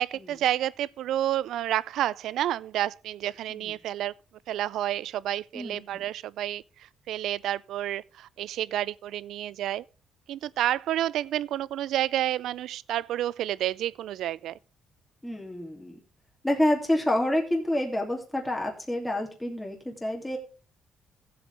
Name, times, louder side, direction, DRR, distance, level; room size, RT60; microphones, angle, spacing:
voice 1, 0.0-4.1 4.5-6.6 7.1-9.8 10.3-14.6, right 12 dB, 80° right, 0.4 m, -29 dB
voice 2, 5.5-6.0 15.2-16.0 16.4-20.4, left 1 dB, 10° left, 2.8 m, -28 dB
15.5 x 7.7 x 3.4 m
cardioid pair, 90°, 0 cm